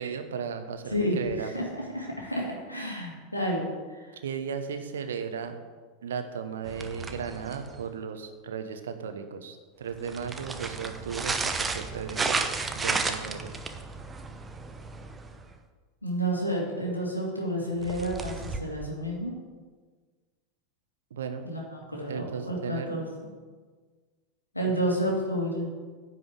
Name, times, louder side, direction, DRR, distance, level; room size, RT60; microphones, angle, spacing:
voice 1, 0.0-1.6 4.2-5.6 6.0-12.4 12.7-13.5 21.1-21.5 22.1-23.0 24.6-24.9, right 6 dB, 65° right, 8 dB, 1.0 m, -35 dB
voice 2, 0.9-1.6 1.9-3.6 3.9-4.1 16.0-19.3 21.4-23.0 24.5-25.7, equal, 85° left, -2 dB, 2.6 m, -30 dB
sound 1, 6.6-7.9 9.9-15.5 17.8-18.6, right 4 dB, 15° right, 0.9 m, -33 dB
10.5 x 5.6 x 7.9 m, 1.5 s
figure-of-eight pair, 85°, 0 cm